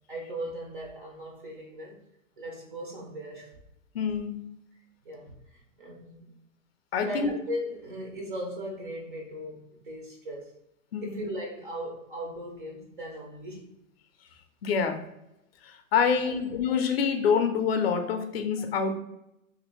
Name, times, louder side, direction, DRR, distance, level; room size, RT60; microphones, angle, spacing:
voice 1, 0.1-2.0 2.4-3.5 5.0-6.3 6.9-10.5 11.0-13.7 16.2-16.4, equal, 40° right, 0 dB, 0.4 m, -38 dB
voice 2, 3.9-4.5 6.9-7.3 10.9-11.2 14.6-15.0 15.6-19.0, left 6 dB, 50° left, 6 dB, 0.4 m, -26 dB
3.1 x 2.5 x 2.9 m, 0.85 s
hypercardioid pair, 175°, 41 cm